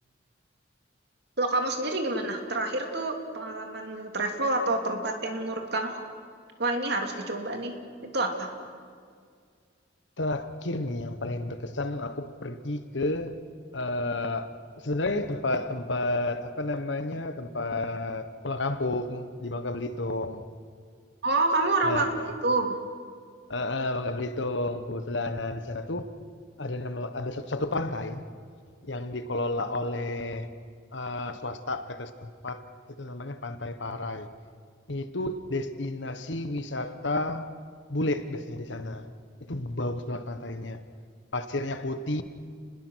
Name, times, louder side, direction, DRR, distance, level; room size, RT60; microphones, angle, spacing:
voice 1, 1.4-6.0 6.6-7.8 8.0-8.5 21.2-22.1 22.4-22.8, right 2 dB, 60° right, 2.7 m, -28 dB
voice 2, 10.2-13.3 13.7-14.5 14.8-20.4 21.8-22.3 23.5-26.1 26.6-28.2 28.8-30.5 30.9-32.7 33.0-34.3 34.9-37.5 37.9-39.1 39.5-40.8 41.3-42.2, left 2 dB, 65° left, 1.3 m, -31 dB
30.0 x 21.0 x 6.4 m
head